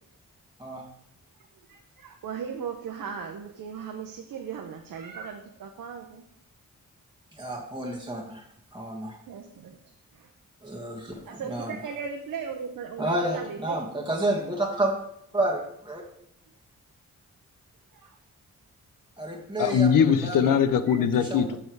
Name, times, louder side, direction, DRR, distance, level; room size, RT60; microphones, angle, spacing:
voice 1, 1.7-6.2 9.0-9.8 10.1-10.3 11.3-13.8 17.9-18.2 20.9-21.0, right 6 dB, 80° right, 3 dB, 0.8 m, -37 dB
voice 2, 7.3-8.4 8.7-9.2 10.6-11.8 13.0-15.0 15.3-16.0 19.2-19.9 20.2-20.5 21.3-21.4, right 1 dB, 15° right, -1 dB, 1.6 m, -30 dB
voice 3, 19.6-21.6, left 7 dB, 75° left, 12 dB, 0.7 m, -21 dB
7.0 x 5.4 x 4.6 m, 0.73 s
cardioid pair, 60°, 33 cm